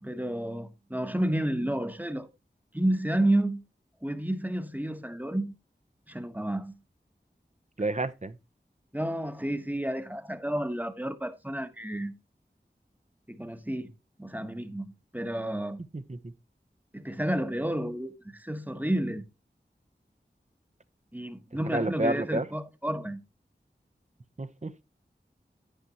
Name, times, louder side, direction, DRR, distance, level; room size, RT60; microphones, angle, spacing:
voice 1, 0.0-2.3 2.7-3.6 4.0-5.5 6.1-6.7 8.9-12.1 13.3-13.9 14.2-15.8 16.9-19.2 21.1-23.2, right 1 dB, 10° right, 1.1 m, -31 dB
voice 2, 7.8-8.3 15.9-16.2 21.7-22.5 24.4-24.8, right 2 dB, 40° right, 0.8 m, -30 dB
10.0 x 9.5 x 2.9 m
wide cardioid pair, 40°, 19 cm